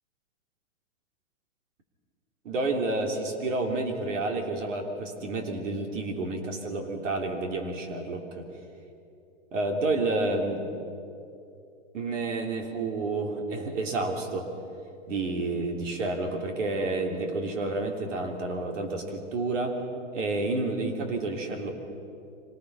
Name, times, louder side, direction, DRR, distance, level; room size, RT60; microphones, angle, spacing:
voice 1, 2.4-8.5 9.5-10.7 11.9-14.5 15.1-19.8 20.1-21.7, right 2 dB, 75° right, 3 dB, 3.5 m, -30 dB
25.0 x 19.0 x 5.6 m, 2.7 s
hypercardioid pair, 140°, 37 cm